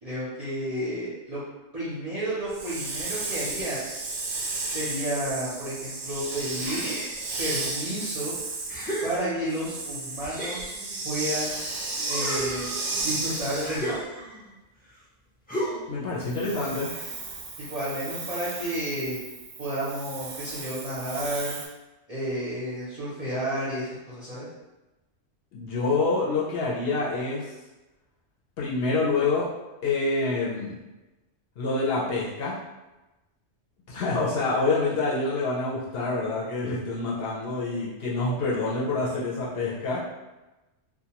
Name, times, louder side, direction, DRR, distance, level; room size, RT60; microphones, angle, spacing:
voice 1, 0.0-1.4 1.7-3.8 4.7-6.8 7.4-8.3 9.0-10.7 11.0-11.5 12.1-12.7 13.0-14.0 16.5-16.7 17.6-19.2 19.6-21.5 22.1-24.5, right 1 dB, 40° right, -10 dB, 0.5 m, -31 dB
Hiss, 2.5-14.0 16.2-21.7, right 3 dB, 85° right, 1.0 m, -34 dB
sound 1, 6.6-7.5 8.1-8.2 8.7-9.7 10.2-11.6 12.0-14.5 15.5-16.0, right 1 dB, 15° left, 0.3 m, -34 dB
voice 2, 15.9-16.9 25.5-27.5 28.6-29.5 29.8-30.8 31.6-32.6 33.9-40.0, left 3 dB, 60° left, -6 dB, 0.7 m, -27 dB
2.4 x 2.2 x 2.8 m, 1.1 s
omnidirectional pair, 1.3 m